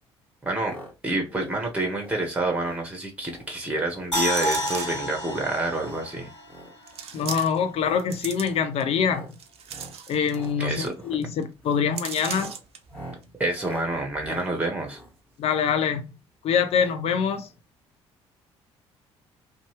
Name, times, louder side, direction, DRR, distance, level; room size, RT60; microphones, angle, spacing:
voice 1, 0.4-0.7 1.0-6.3 10.6-10.9 13.4-15.0, right 2 dB, 10° right, 1.0 m, -28 dB
sound 1, 0.6-0.9 1.2-1.6 1.9-2.2 2.6-2.8 3.2-3.5 3.8-4.1 4.5-4.8 5.2-6.1 6.4-6.7 7.1-7.4 7.7-8.0 8.4-8.7 9.0-9.3 9.7-10.0 10.3-10.6 10.9-11.2 11.6-11.9 12.2-15.9 16.7-17.0 17.2-17.3 17.5-17.6, right 1 dB, 10° left, 1.4 m, -45 dB
sound 2, 4.1-7.3 7.7-7.8, left 1 dB, 85° left, 0.8 m, -30 dB
sound 3, 4.3-5.1 5.9-6.0 6.9-7.7 8.0-8.8 9.3-10.5 10.8-10.9 11.2-11.4 11.9-12.8 13.2-13.3, right 7 dB, 45° right, 0.5 m, -37 dB
voice 2, 7.1-9.4 10.1-12.5 15.4-16.1 16.4-17.5, left 7 dB, 45° left, 0.6 m, -25 dB
2.6 x 2.3 x 3.1 m
figure-of-eight pair, 50°, 14 cm